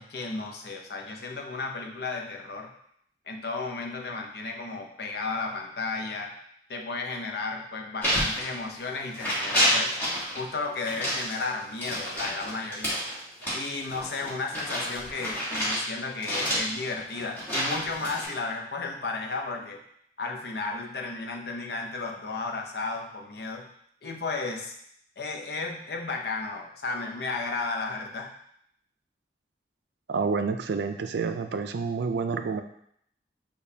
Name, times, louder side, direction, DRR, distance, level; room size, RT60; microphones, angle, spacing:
voice 1, 0.0-2.7 3.3-6.3 6.7-10.0 10.3-13.0 13.5-19.8 20.2-23.7 24.0-24.7 25.2-28.3, left 3 dB, 60° left, 2 dB, 0.6 m, -33 dB
sound 1, 8.0-8.9 9.1-10.4 10.8-15.8 16.2-18.3, equal, 10° left, 1.2 m, -29 dB
voice 2, 30.1-32.6, right 5 dB, 75° right, 8 dB, 0.4 m, -28 dB
6.6 x 2.3 x 2.7 m, 0.70 s
head